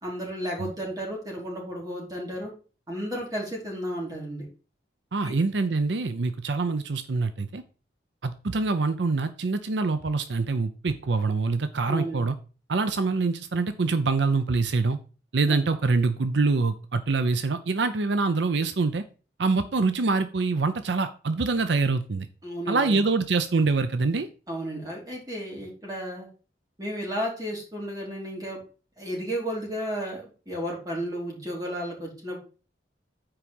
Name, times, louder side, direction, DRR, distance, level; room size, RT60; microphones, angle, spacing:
voice 1, 0.0-2.5 2.9-4.4 5.2-5.3 11.9-12.2 15.5-15.6 22.4-23.0 24.5-26.3 26.8-28.6 29.0-32.4, equal, 20° right, -2 dB, 3.2 m, -33 dB
voice 2, 5.1-7.6 8.2-12.3 12.7-15.0 15.3-19.0 19.4-22.3 22.7-24.3, right 3 dB, 80° right, 10 dB, 0.6 m, -25 dB
8.8 x 4.8 x 5.3 m, 0.36 s
head